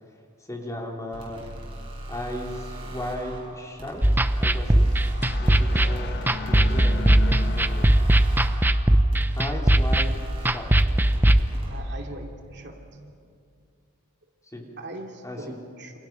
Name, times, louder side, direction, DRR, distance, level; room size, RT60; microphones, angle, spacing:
voice 1, 0.5-1.4 2.1-4.0 4.4-4.9 5.4-6.1 6.4-7.9 9.3-10.1 10.4-10.7 14.5-14.7 15.2-15.6, left 1 dB, 15° left, 0 dB, 3.1 m, -35 dB
sound 1, 1.1-11.8, right 1 dB, 25° right, 5.2 m, -39 dB
sound 2, 4.0-11.4, right 1 dB, 10° right, 0.6 m, -20 dB
sound 3, 4.6-9.1, left 3 dB, 50° left, 1.6 m, -37 dB
voice 2, 11.7-13.1 14.8-15.9, right 2 dB, 50° right, 2 dB, 2.6 m, -40 dB
28.0 x 28.0 x 5.9 m, 2.3 s
head